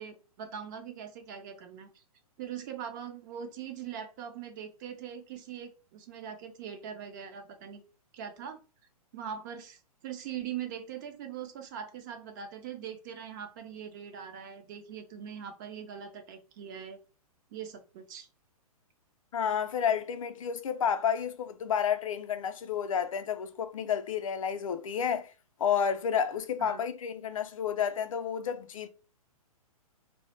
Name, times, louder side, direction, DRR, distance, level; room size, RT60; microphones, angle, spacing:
voice 1, 0.0-2.0 2.4-7.8 8.1-8.6 9.1-17.0 17.5-18.3 26.6-26.8, right 8 dB, 30° right, 0.4 m, -41 dB
voice 2, 19.3-25.3 25.6-28.9, left 8 dB, 60° left, 0.4 m, -30 dB
2.1 x 2.0 x 3.0 m
figure-of-eight pair, 120°, 19 cm